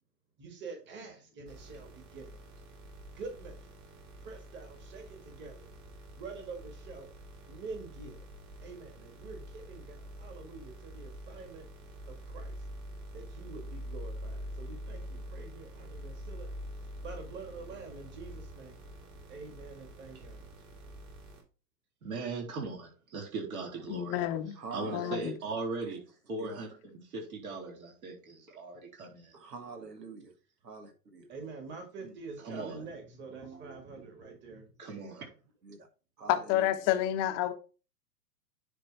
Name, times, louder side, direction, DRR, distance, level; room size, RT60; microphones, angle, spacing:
voice 1, 0.4-2.4 3.1-3.6 4.2-5.7 6.1-7.1 7.5-8.3 8.6-11.7 12.1-12.6 13.1-16.5 17.0-18.8 19.3-20.5 31.3-34.7, right 4 dB, 20° right, 1.9 m, -46 dB
sound 1, 1.5-21.4, equal, 45° right, 3.1 m, -46 dB
voice 2, 22.0-24.3 24.7-29.4 32.4-32.8 33.4-33.9 34.8-35.3, right 3 dB, 60° right, 4.0 m, -39 dB
voice 3, 23.9-24.5 24.9-25.3 36.3-37.5, left 13 dB, 30° left, 1.0 m, -29 dB
voice 4, 24.6-25.3 25.8-25.9 26.4-26.7 29.3-30.3 30.6-31.3 32.0-32.1 35.6-35.8 36.2-36.7, right 4 dB, 80° right, 2.1 m, -44 dB
9.9 x 3.5 x 4.7 m
figure-of-eight pair, 110°, 48 cm